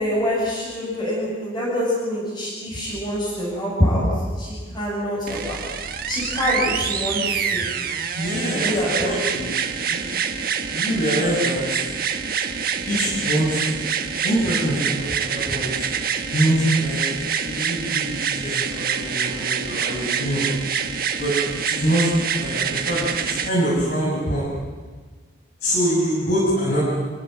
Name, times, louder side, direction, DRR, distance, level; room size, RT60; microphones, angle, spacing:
voice 1, 0.0-4.0 4.4-5.6 6.1-7.6 8.5-9.2, equal, 25° left, -9 dB, 7.8 m, -25 dB
sound 1, 5.3-23.5 24.5-24.6, right 7 dB, 50° right, 1.6 m, -26 dB
voice 2, 8.1-9.5 9.9-10.0 10.7-11.6 12.9-13.8 14.2-15.7 16.3-20.5 21.2-21.3 21.6-24.5 25.6-26.9, equal, 55° left, -7 dB, 7.6 m, -24 dB
28.0 x 17.0 x 9.3 m, 1.4 s
head